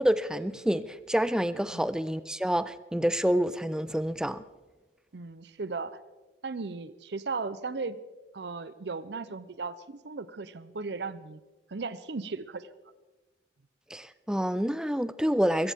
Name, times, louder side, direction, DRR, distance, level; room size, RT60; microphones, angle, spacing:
voice 1, 0.0-4.4 13.9-15.7, equal, 5° right, 14 dB, 0.5 m, -28 dB
voice 2, 5.1-6.0 6.4-8.0 8.3-11.4 11.7-12.7, right 4 dB, 65° right, 14 dB, 0.6 m, -36 dB
21.5 x 16.0 x 3.6 m, 1.2 s
head